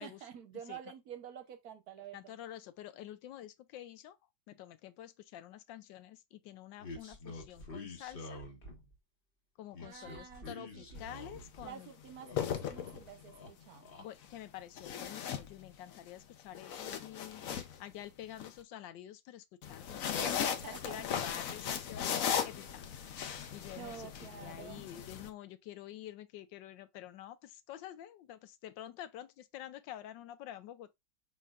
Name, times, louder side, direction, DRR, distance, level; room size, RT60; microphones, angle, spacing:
voice 1, 0.0-2.4 9.8-11.1 11.6-13.9 20.1-21.4 23.4-24.9, right 9 dB, 65° right, 1.1 m, -49 dB
voice 2, 2.1-4.2 4.5-8.4 9.6-11.9 14.0-20.6 20.8-30.9, left 12 dB, 90° left, 1.3 m, -48 dB
sound 1, 6.8-8.9 9.7-11.7 12.0-13.0 13.3-14.0, left 2 dB, 35° left, 1.1 m, -48 dB
sound 2, 11.0-11.2 12.1-13.3 14.8-16.0 16.4-18.5 19.6-25.3, left 8 dB, 60° left, 0.9 m, -37 dB
5.1 x 4.2 x 2.3 m
omnidirectional pair, 2.0 m